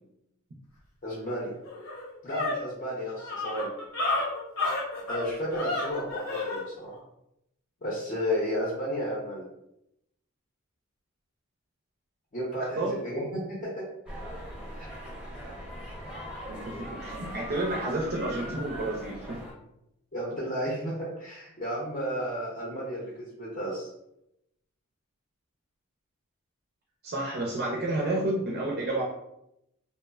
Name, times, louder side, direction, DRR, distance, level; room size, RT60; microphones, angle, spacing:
voice 1, 1.0-1.5 2.2-3.7 5.1-7.0 7.8-9.5 12.3-13.8 14.8-14.9 20.1-23.9, equal, 40° left, -5 dB, 0.6 m, -32 dB
sound 1, 1.2-1.3 1.6-6.6, left 2 dB, 75° left, 0.8 m, -31 dB
voice 2, 12.6-13.0 16.5-19.4 27.0-29.0, right 2 dB, 50° right, -2 dB, 0.4 m, -30 dB
sound 2, 14.1-19.5, equal, 5° right, 0.6 m, -40 dB
2.9 x 2.0 x 2.3 m, 0.82 s
head